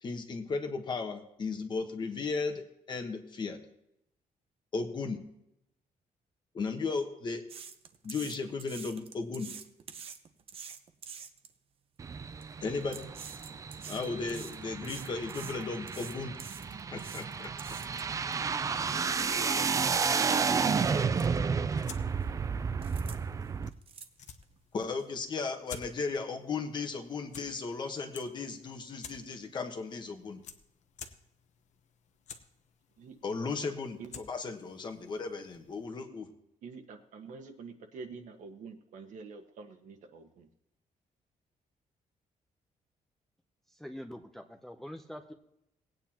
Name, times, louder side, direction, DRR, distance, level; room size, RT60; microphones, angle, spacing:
voice 1, 0.0-3.6 4.7-5.2 6.5-7.4 8.0-9.5 12.6-13.1 13.9-16.4 16.9-17.5 24.7-30.4 33.2-36.3, left 4 dB, 35° left, 5 dB, 1.2 m, -35 dB
sound 1, 7.5-11.5 12.2-12.4 12.8-18.3 18.8-18.9 19.4-19.5 19.9-20.3 20.8-20.9 21.1-21.4 21.6-22.2 22.8-23.2 23.4-24.6 25.0-25.1, right 7 dB, 45° right, 0.9 m, -47 dB
sound 2, 12.0-23.7, right 5 dB, 25° right, 0.4 m, -32 dB
voice 2, 19.3-20.0 33.0-33.1 34.0-34.2 36.6-40.5, right 5 dB, 70° right, 5 dB, 1.5 m, -47 dB
sound 3, 21.5-35.9, left 7 dB, 60° left, 1.0 m, -53 dB
voice 3, 43.7-45.3, equal, ahead, 4 dB, 0.7 m, -44 dB
19.0 x 9.2 x 2.9 m, 0.80 s
cardioid pair, 170°, 14 cm